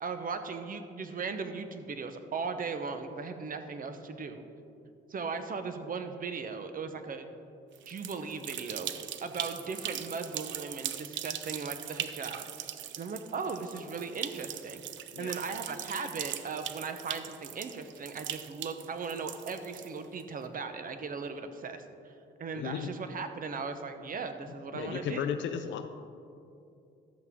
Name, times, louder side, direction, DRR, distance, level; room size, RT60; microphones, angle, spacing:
voice 1, 0.0-4.4 5.1-7.3 7.9-8.9 9.2-12.4 13.0-14.8 15.2-21.8 22.4-25.2, right 4 dB, 45° right, 8 dB, 0.9 m, -37 dB
sound 1, 7.7-20.2, right 11 dB, 70° right, 0.5 m, -40 dB
voice 2, 22.5-22.9 24.7-25.9, left 8 dB, 70° left, 7 dB, 0.5 m, -34 dB
12.5 x 8.2 x 3.7 m, 2.6 s
cardioid pair, 90°, 20 cm